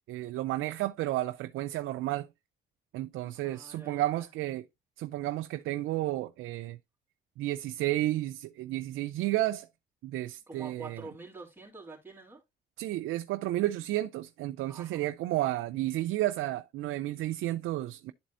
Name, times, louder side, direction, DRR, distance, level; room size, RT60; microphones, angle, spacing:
voice 1, 0.1-2.3 2.9-4.6 5.0-6.8 7.4-9.7 10.0-11.0 12.8-18.1, right 15 dB, 90° right, 0.5 m, -32 dB
voice 2, 3.4-4.3 10.5-12.4 14.7-15.1, right 3 dB, 10° right, 2.7 m, -47 dB
11.5 x 4.1 x 2.5 m
cardioid pair, 90°, 20 cm